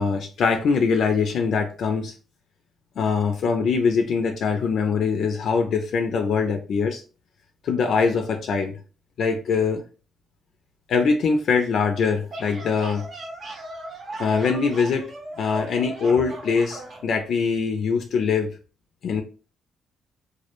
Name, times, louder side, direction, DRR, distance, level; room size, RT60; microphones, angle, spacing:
voice 1, 0.0-2.1 3.0-7.0 7.6-8.8 9.2-9.8 10.9-13.0 14.2-15.1 15.4-18.5 19.0-19.2, left 5 dB, 65° left, 0.3 m, -23 dB
sound 1, 12.3-17.1, right 1 dB, 50° right, 0.7 m, -38 dB
2.2 x 2.0 x 2.9 m
cardioid pair, 90°, 0 cm